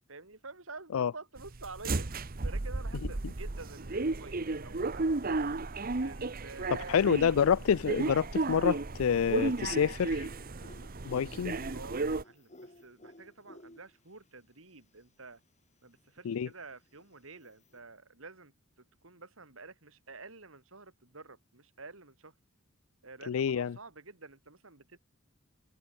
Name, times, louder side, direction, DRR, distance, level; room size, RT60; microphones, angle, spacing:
voice 1, 0.1-5.4 6.0-7.1 11.3-11.4 11.7-15.4 15.8-18.5 19.0-22.3 23.0-25.0, right 3 dB, 70° right, 3.4 m, -49 dB
sound 1, 1.4-12.2, right 3 dB, 45° right, 1.0 m, -34 dB
sound 2, 5.0-5.6 5.9-7.9 8.3-14.3 14.6-14.7 14.8-14.9 15.5-17.8, left 1 dB, 35° left, 7.5 m, -56 dB
voice 2, 6.7-10.3 11.0-11.6 16.2-16.5 23.3-23.8, left 7 dB, 80° left, 0.4 m, -28 dB
head